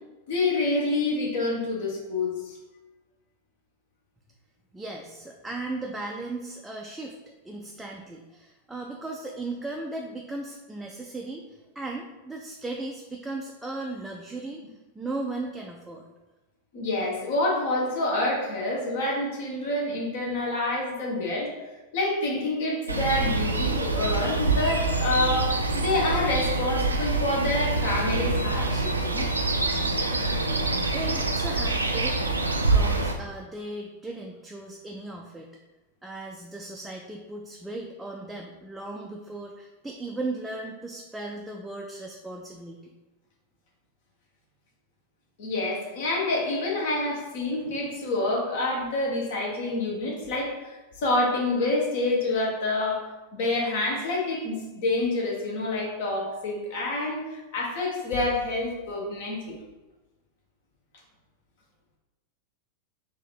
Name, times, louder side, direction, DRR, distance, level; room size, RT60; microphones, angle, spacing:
voice 1, 0.3-2.6 16.7-21.5 21.9-29.2 45.4-53.0 53.3-59.5, left 2 dB, 55° left, -2 dB, 1.1 m, -27 dB
voice 2, 4.7-7.1 7.4-16.1 30.9-35.5 36.0-42.9, right 2 dB, 5° right, -1 dB, 0.4 m, -37 dB
sound 1, 22.9-33.1, right 2 dB, 80° right, 0.4 m, -26 dB
3.7 x 2.7 x 4.4 m, 1.1 s
figure-of-eight pair, 90°, 0 cm